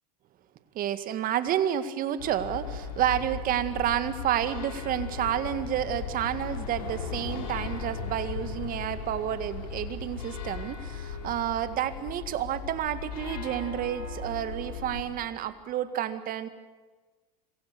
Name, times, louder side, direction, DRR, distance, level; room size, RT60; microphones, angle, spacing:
voice 1, 0.8-16.5, right 11 dB, 45° right, 12 dB, 2.0 m, -30 dB
sound 1, 2.2-15.0, left 5 dB, 80° left, 5.3 m, -37 dB
26.5 x 23.0 x 6.9 m, 1.3 s
hypercardioid pair, 100°, 21 cm